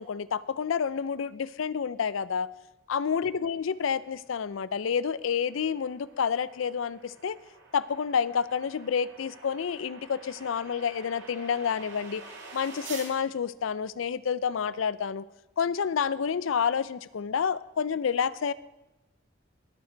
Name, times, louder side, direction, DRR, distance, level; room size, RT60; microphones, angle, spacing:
voice 1, 0.0-2.5 2.9-7.4 7.7-12.2 12.5-15.2 15.6-18.5, left 7 dB, 75° left, 18 dB, 0.4 m, -29 dB
sound 1, 4.6-13.1, right 4 dB, 65° right, 2.1 m, -48 dB
19.5 x 6.6 x 4.5 m, 0.97 s
head